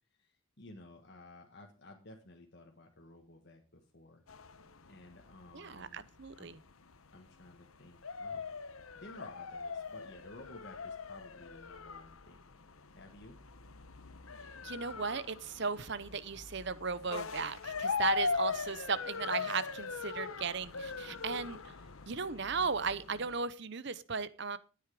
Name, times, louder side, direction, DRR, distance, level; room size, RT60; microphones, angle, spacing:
voice 1, 0.2-4.2 4.9-6.0 6.4-6.5 7.1-8.5 8.9-12.5 12.9-13.4, left 2 dB, 55° left, 2 dB, 1.7 m, -54 dB
sound 1, 4.3-23.4, left 5 dB, 85° left, 1.1 m, -40 dB
voice 2, 5.5-6.6 14.6-21.7 22.1-24.6, right 5 dB, 55° right, 16 dB, 0.9 m, -36 dB
13.5 x 9.4 x 5.0 m, 0.35 s
head